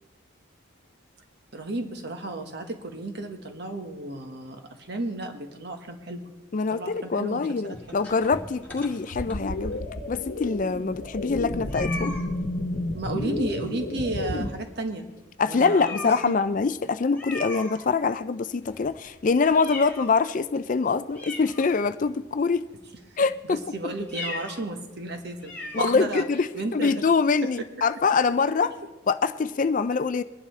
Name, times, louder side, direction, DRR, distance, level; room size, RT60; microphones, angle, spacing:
voice 1, 1.5-6.3 6.7-8.1 12.9-15.1 15.5-16.3 23.4-26.2 26.5-27.0 28.6-28.7, right 2 dB, 50° right, 1.4 m, -33 dB
voice 2, 6.5-9.8 10.1-12.2 15.4-22.7 23.2-23.6 25.7-28.7 29.1-30.2, left 4 dB, 40° left, 0.4 m, -24 dB
sound 1, 7.7-9.8 10.4-10.5 10.8-10.9 11.7-12.3 13.6-14.1 14.4-14.6 15.1-15.2 15.7-16.4 17.1-18.2 18.6-20.3 20.7-20.8 21.1-22.1 22.7-23.0 24.0-24.6 25.0-25.1 25.4-26.0, left 2 dB, 5° left, 2.0 m, -39 dB
sound 2, 9.1-14.5, left 1 dB, 65° left, 1.1 m, -31 dB
22.5 x 11.0 x 3.3 m
head